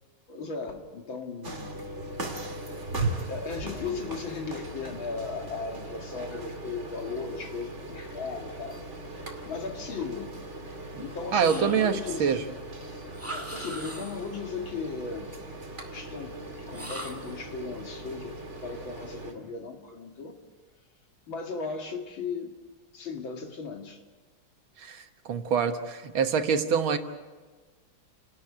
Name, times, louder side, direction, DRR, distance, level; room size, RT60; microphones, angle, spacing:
voice 1, 0.3-2.3 2.9-8.8 9.4-10.6 11.0-12.4 13.3-15.3 15.9-20.4 21.3-22.6 22.9-24.0, left 4 dB, 70° left, 3 dB, 3.1 m, -37 dB
sound 1, 1.4-19.3, right 2 dB, 35° right, 2.7 m, -39 dB
voice 2, 11.3-12.4 24.8-27.0, right 7 dB, 75° right, 7 dB, 2.1 m, -26 dB
sound 2, 11.4-12.2 13.1-14.4 16.7-17.5, right 1 dB, 5° right, 1.9 m, -40 dB
29.5 x 12.5 x 9.9 m, 1.4 s
omnidirectional pair, 2.3 m